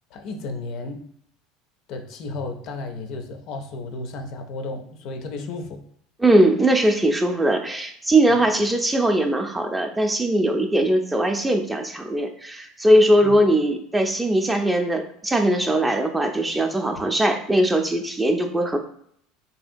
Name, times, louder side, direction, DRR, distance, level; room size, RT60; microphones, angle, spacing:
voice 1, 0.1-1.0 1.9-5.8 8.3-8.4 13.2-13.4, left 3 dB, 60° left, 6 dB, 0.4 m, -33 dB
voice 2, 6.2-18.8, right 1 dB, 10° right, 5 dB, 0.4 m, -20 dB
2.8 x 2.7 x 2.5 m, 0.66 s
hypercardioid pair, 85°, 0 cm